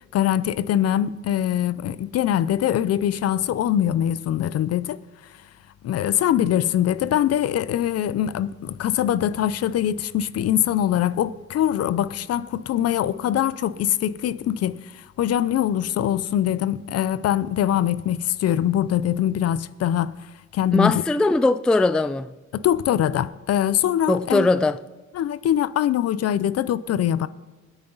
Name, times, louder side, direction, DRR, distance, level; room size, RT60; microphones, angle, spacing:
voice 1, 0.1-5.0 5.8-20.2 20.5-20.9 22.5-24.5 25.1-27.3, left 11 dB, 55° left, 0.6 m, -23 dB
voice 2, 20.7-22.3 24.1-24.8, left 2 dB, 5° left, 0.3 m, -20 dB
26.0 x 8.9 x 4.0 m
cardioid pair, 115°, 29 cm